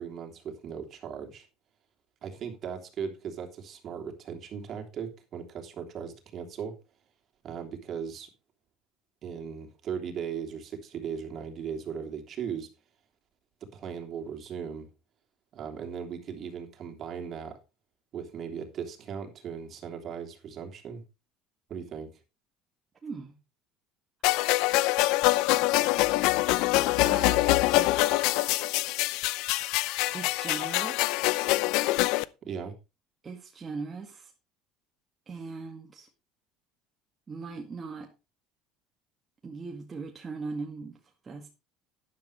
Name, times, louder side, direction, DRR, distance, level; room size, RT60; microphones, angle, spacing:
voice 1, 0.0-1.5 2.2-6.7 7.4-8.3 9.2-12.7 13.7-14.9 15.5-17.6 18.1-21.0 21.7-22.1 32.4-32.7, right 7 dB, 45° right, 3.2 m, -38 dB
voice 2, 23.0-23.4 24.3-24.5 27.0-28.3 30.1-31.4 33.2-34.3 35.3-36.1 37.3-38.1 39.4-41.5, right 4 dB, 25° right, 2.0 m, -40 dB
sound 1, 24.2-32.2, left 19 dB, 70° left, 0.6 m, -25 dB
12.0 x 10.5 x 3.3 m
supercardioid pair, 115°, 0 cm